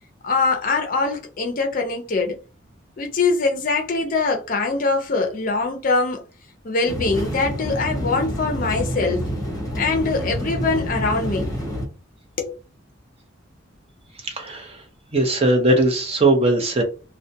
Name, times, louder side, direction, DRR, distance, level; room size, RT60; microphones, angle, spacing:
voice 1, 0.2-2.4 3.0-6.2 6.6-9.2 9.8-11.5 12.4-12.6, left 3 dB, 45° left, 0.5 m, -23 dB
sound 1, 6.9-11.8, equal, 20° left, 0.9 m, -28 dB
voice 2, 14.2-14.8 15.1-16.8, right 2 dB, 30° right, 0.6 m, -19 dB
2.3 x 2.1 x 2.7 m
head